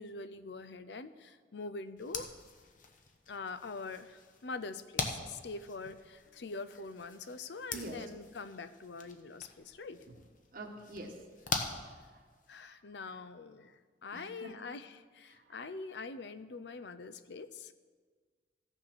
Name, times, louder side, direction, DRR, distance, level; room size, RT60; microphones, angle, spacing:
voice 1, 0.0-2.3 3.3-10.0 12.5-17.7, left 3 dB, 75° left, 13 dB, 0.6 m, -44 dB
sound 1, 2.0-12.6, left 4 dB, 50° left, 1.0 m, -43 dB
voice 2, 7.7-8.0 10.1-10.2 10.5-11.2 12.1-12.2 12.6-12.8 14.1-14.5 15.3-15.5, right 1 dB, 55° right, 1 dB, 1.2 m, -46 dB
15.0 x 6.3 x 5.9 m, 1.5 s
head